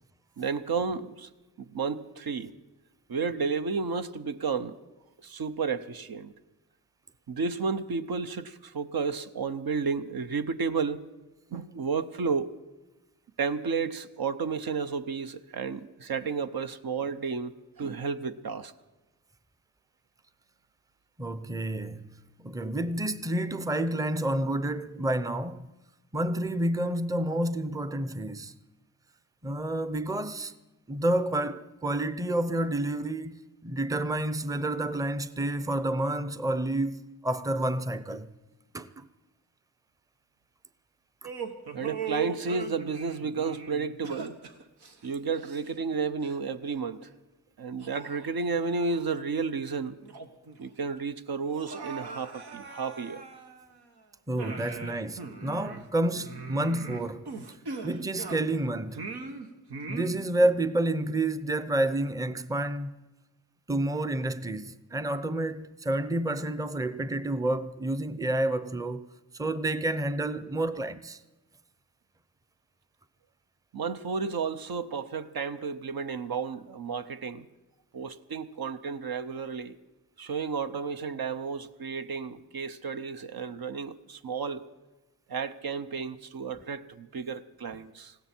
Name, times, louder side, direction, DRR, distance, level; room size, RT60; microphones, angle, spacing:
voice 1, 0.4-1.3 1.6-2.5 3.1-4.7 5.2-6.3 7.3-11.0 11.5-12.5 13.4-18.7 41.7-44.4 45.0-47.1 47.6-50.0 50.6-53.2 73.7-77.5 77.9-79.8 80.2-84.6 85.3-88.2, right 5 dB, 70° right, 0.8 m, -32 dB
voice 2, 21.2-25.7 26.1-28.5 29.4-30.5 30.9-38.3 38.7-39.1 41.2-41.3 54.3-57.3 57.8-59.1 59.9-62.9 63.7-69.1 69.3-71.2, right 1 dB, 10° right, 0.6 m, -29 dB
sound 1, 41.2-45.9 46.2-46.4 47.1-47.2 47.8-49.1 49.5-49.6 50.0-50.6 50.8-50.9 51.4-53.9 54.4-58.6 58.9-60.5, right 6 dB, 90° right, 1.3 m, -40 dB
19.5 x 16.0 x 4.4 m
cardioid pair, 60°, 38 cm